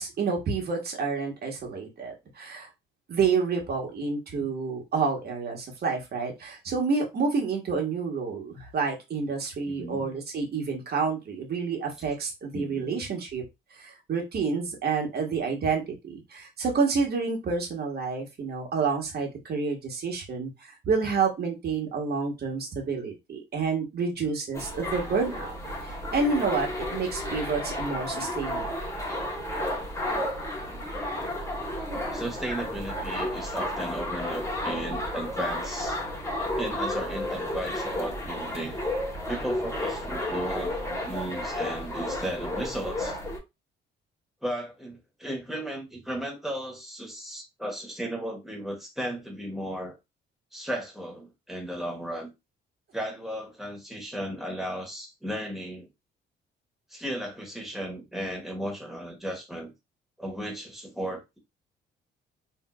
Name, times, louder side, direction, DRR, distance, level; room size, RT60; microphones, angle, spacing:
voice 1, 0.0-2.7 3.1-13.4 13.8-25.6 25.8-28.8, right 4 dB, 55° right, 1.4 m, -29 dB
voice 2, 9.7-10.1 12.5-13.0 32.1-36.0 36.6-38.8 39.3-40.8 41.0-43.2 44.4-50.0 50.5-52.3 52.9-55.9 56.9-59.7 60.2-61.4, right 1 dB, ahead, 1.4 m, -35 dB
sound 1, 24.5-43.4, left 1 dB, 15° left, 1.1 m, -32 dB
3.6 x 2.8 x 2.3 m
cardioid pair, 90°, 20 cm